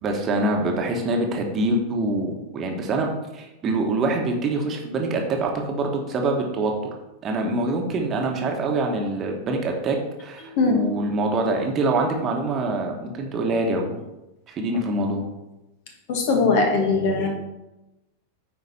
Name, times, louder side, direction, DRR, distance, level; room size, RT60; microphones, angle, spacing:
voice 1, 0.0-6.7 7.2-14.0 14.5-15.2, right 2 dB, 30° right, 2 dB, 1.3 m, -25 dB
voice 2, 16.1-17.3, left 4 dB, 50° left, 3 dB, 1.6 m, -20 dB
9.4 x 4.6 x 4.2 m, 0.98 s
figure-of-eight pair, 90°, 0 cm